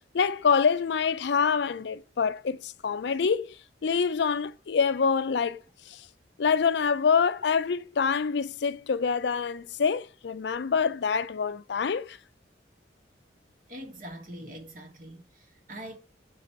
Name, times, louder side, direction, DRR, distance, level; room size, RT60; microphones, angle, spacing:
voice 1, 0.1-3.6 3.8-5.6 5.9-6.0 6.4-12.2, left 6 dB, 70° left, 0.4 m, -26 dB
voice 2, 13.7-16.0, right 1 dB, 45° right, 1.4 m, -43 dB
5.1 x 4.8 x 4.4 m
head